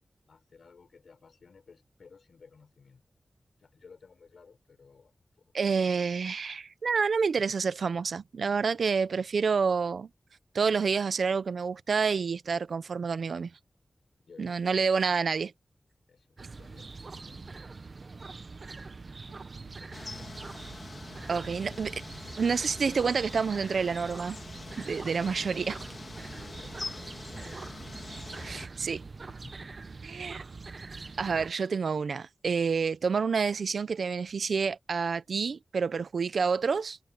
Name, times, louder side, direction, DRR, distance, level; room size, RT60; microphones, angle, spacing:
voice 1, 0.3-3.0 3.6-5.8 14.2-14.6 16.1-17.8 18.7-20.7 26.2-30.1, left 5 dB, 85° left, 5.1 m, -57 dB
voice 2, 5.5-10.1 10.5-13.5 14.4-15.5 21.3-22.0 22.4-24.4 24.8-25.8 28.4-29.0 30.0-30.4 31.2-37.0, right 5 dB, 90° right, 0.7 m, -28 dB
sound 1, 16.4-31.5, right 4 dB, 55° right, 1.0 m, -43 dB
sound 2, 19.9-28.7, left 3 dB, 55° left, 2.7 m, -44 dB
wide cardioid pair, 85°, 0 cm